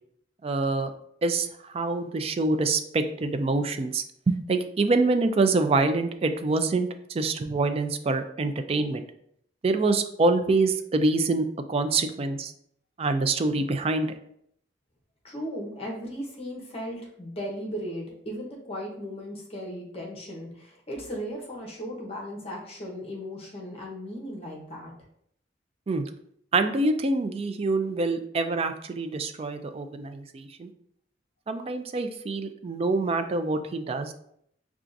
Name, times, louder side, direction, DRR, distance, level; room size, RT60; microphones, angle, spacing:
voice 1, 0.4-0.9 1.2-9.0 9.6-12.5 13.0-14.1 25.9-26.1 26.5-30.7 31.5-34.1, right 3 dB, 35° right, 8 dB, 0.3 m, -26 dB
voice 2, 15.2-24.9, equal, 35° left, -1 dB, 1.0 m, -36 dB
5.7 x 2.4 x 2.5 m, 0.70 s
head